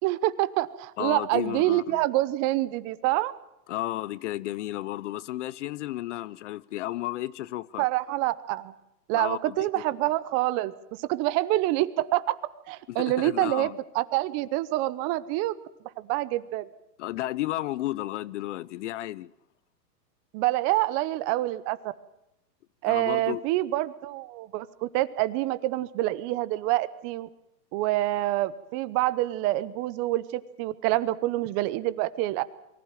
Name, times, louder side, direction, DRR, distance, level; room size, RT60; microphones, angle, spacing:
voice 1, 0.0-3.3 7.8-8.7 9.1-10.7 11.0-12.4 12.7-15.5 16.0-16.7 20.3-21.8 22.8-27.3 27.7-32.4, right 16 dB, 30° right, 0.8 m, -26 dB
voice 2, 1.0-2.0 3.7-7.9 9.1-9.7 12.9-13.8 17.0-19.3 22.8-23.4, left 15 dB, 45° left, 0.7 m, -33 dB
23.5 x 15.0 x 9.1 m
hypercardioid pair, 130°, 49 cm